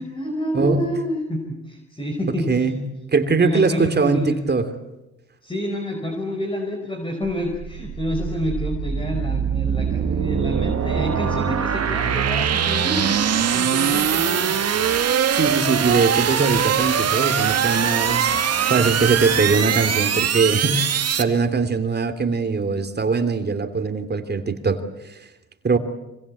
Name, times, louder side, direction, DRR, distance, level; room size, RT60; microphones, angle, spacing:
voice 1, 0.0-2.7 3.2-4.4 5.4-14.6, equal, 15° left, 3 dB, 4.8 m, -28 dB
voice 2, 2.3-2.8 3.1-4.7 15.3-18.3 18.7-24.8 25.1-25.2 25.6-25.8, right 4 dB, 35° right, 7 dB, 2.9 m, -21 dB
sound 1, 7.2-21.2, right 8 dB, 55° right, 2.2 m, -22 dB
26.0 x 24.0 x 8.5 m, 0.95 s
cardioid pair, 90°, 30 cm